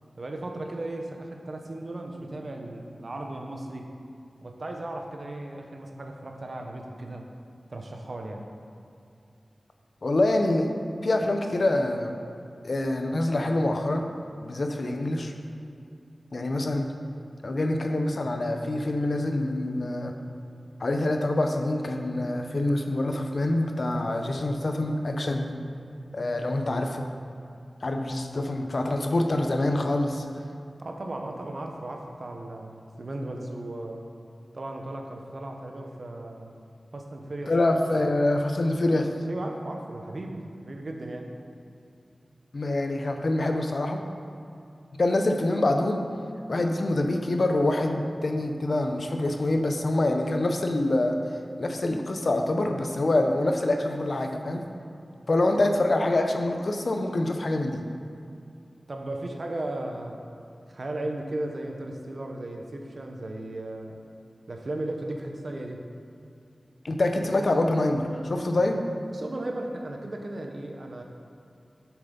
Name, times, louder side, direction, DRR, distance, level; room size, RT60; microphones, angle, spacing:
voice 1, 0.2-3.9 4.4-7.3 7.7-8.5 30.8-34.0 34.5-36.5 36.9-37.5 39.3-41.3 58.9-60.3 60.7-64.0 64.5-65.8 69.1-71.0, right 1 dB, 60° right, 2 dB, 1.1 m, -36 dB
voice 2, 10.0-10.7 11.0-12.1 12.6-14.1 14.4-15.3 16.3-16.9 17.4-20.1 20.8-25.5 26.1-27.1 27.8-30.3 37.5-39.1 42.5-44.0 45.0-46.0 46.5-51.2 51.6-54.6 55.3-57.8 66.8-68.8, left 2 dB, 65° left, 4 dB, 0.8 m, -25 dB
8.0 x 7.3 x 5.4 m, 2.6 s
wide cardioid pair, 60°, 0 cm